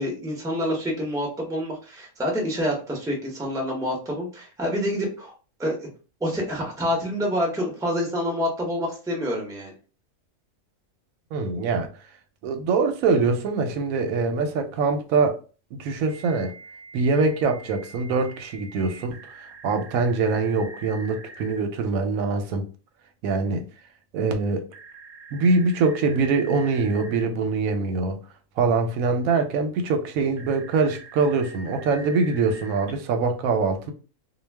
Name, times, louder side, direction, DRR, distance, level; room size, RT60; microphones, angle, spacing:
voice 1, 0.0-5.3 5.6-5.9 6.2-9.7, equal, 5° right, 0.6 m, -27 dB
voice 2, 11.3-11.9 12.4-15.4 15.7-16.5 16.9-19.2 19.6-22.7 23.2-23.6 24.1-24.7 25.3-28.2 28.6-33.9, right 4 dB, 85° right, 1.0 m, -23 dB
Telephone, 13.5-14.2 16.1-21.6 24.7-27.2 30.4-32.9, right 2 dB, 65° right, 0.9 m, -44 dB
2.3 x 2.3 x 3.3 m
omnidirectional pair, 1.4 m